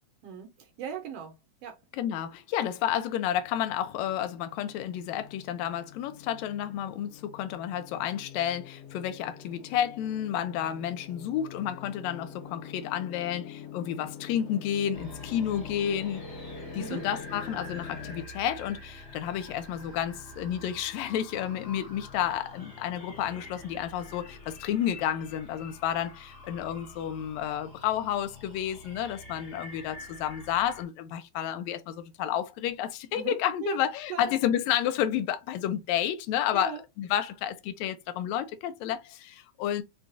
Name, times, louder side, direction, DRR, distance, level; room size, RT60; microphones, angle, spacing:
voice 1, 0.2-1.8 16.7-17.1 33.1-34.3 36.5-36.8, right 8 dB, 70° right, 1.6 m, -39 dB
voice 2, 2.0-16.2 16.7-36.7 37.0-39.8, left 10 dB, 80° left, 1.9 m, -31 dB
sound 1, 3.4-18.3, left 7 dB, 65° left, 2.2 m, -45 dB
sound 2, 14.9-30.8, left 1 dB, 45° left, 1.0 m, -47 dB
5.4 x 2.3 x 2.5 m
omnidirectional pair, 3.3 m